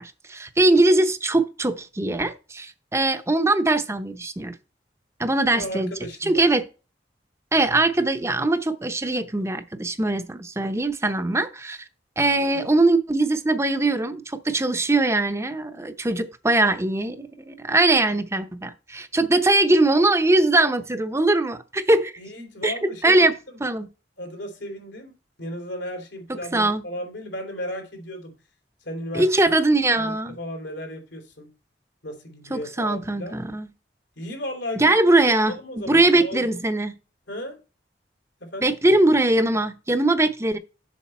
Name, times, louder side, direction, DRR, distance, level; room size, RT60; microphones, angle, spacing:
voice 1, 0.0-4.5 5.2-5.9 6.2-6.7 7.5-11.8 12.2-22.1 22.6-23.3 23.6-23.9 26.5-26.8 29.1-30.4 32.5-33.7 34.8-35.6 35.9-36.9 38.6-40.6, right 2 dB, 15° right, 0.7 m, -21 dB
voice 2, 5.5-6.5 12.4-12.7 22.2-23.6 24.2-28.4 28.8-29.5 29.9-31.5 32.0-33.4 34.2-34.9 35.3-36.6 37.3-37.6 38.4-38.8, left 1 dB, 90° left, 3.1 m, -35 dB
7.4 x 6.3 x 4.3 m
head